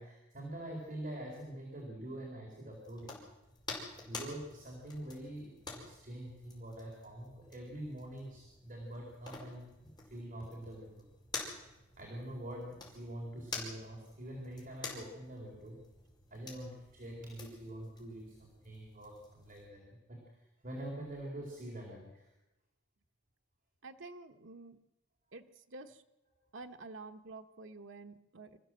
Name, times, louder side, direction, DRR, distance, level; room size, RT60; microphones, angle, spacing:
voice 1, 0.0-3.2 4.0-11.1 12.0-15.8 16.3-22.3, right 1 dB, 45° right, -1 dB, 4.3 m, -45 dB
sound 1, 2.7-19.7, left 3 dB, 20° left, 5.0 m, -49 dB
voice 2, 23.8-24.8 25.3-26.0 26.5-28.6, right 3 dB, 70° right, 6 dB, 1.1 m, -49 dB
26.0 x 14.5 x 7.7 m, 0.97 s
head